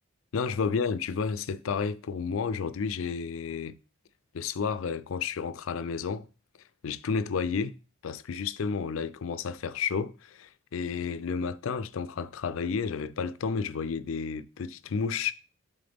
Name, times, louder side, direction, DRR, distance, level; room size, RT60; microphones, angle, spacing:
voice 1, 0.3-3.7 4.3-6.3 6.8-7.7 8.0-15.3, left 5 dB, 75° left, 0.4 m, -31 dB
7.8 x 3.7 x 3.4 m
head